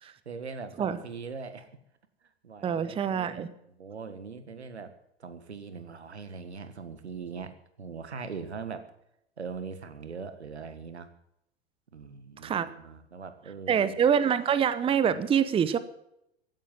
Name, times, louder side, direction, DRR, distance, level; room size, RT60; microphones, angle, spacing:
voice 1, 0.0-1.8 2.2-3.5 3.8-8.9 9.4-11.1 11.9-14.0, right 5 dB, 80° right, 11 dB, 1.7 m, -41 dB
voice 2, 2.6-3.5 12.4-12.7 13.7-15.8, right 8 dB, 15° right, 15 dB, 0.8 m, -25 dB
16.0 x 9.3 x 7.3 m, 0.79 s
figure-of-eight pair, 95°, 33 cm